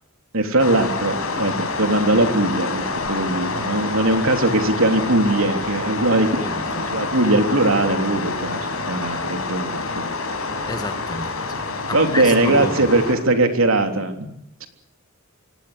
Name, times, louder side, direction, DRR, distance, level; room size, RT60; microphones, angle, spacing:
voice 1, 0.3-6.5 6.9-10.0 11.9-14.3 14.6-14.7, right 2 dB, 70° right, 5 dB, 3.4 m, -20 dB
sound 1, 0.6-13.1, left 3 dB, 90° left, 5.4 m, -27 dB
voice 2, 6.1-6.8 10.7-11.6 11.9-12.9, left 2 dB, 20° left, 8 dB, 1.8 m, -31 dB
25.5 x 18.5 x 8.0 m, 0.74 s
head